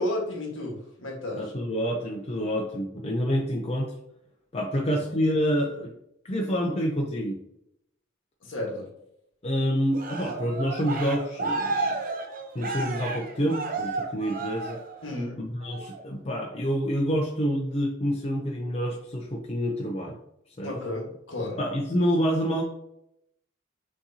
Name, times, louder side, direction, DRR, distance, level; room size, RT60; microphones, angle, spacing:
voice 1, 0.0-1.5 4.7-5.0 8.4-8.9 15.0-15.4 20.6-21.6, left 1 dB, 65° left, -1 dB, 1.3 m, -32 dB
voice 2, 1.4-3.9 4.5-5.9 6.2-7.4 9.4-11.9 12.5-14.8 15.4-20.2 20.6-20.7 21.6-22.6, equal, 30° left, 0 dB, 0.5 m, -27 dB
Cheering, 9.9-15.2 15.6-16.0, right 3 dB, 45° right, 0.6 m, -32 dB
6.2 x 2.8 x 2.7 m, 0.76 s
head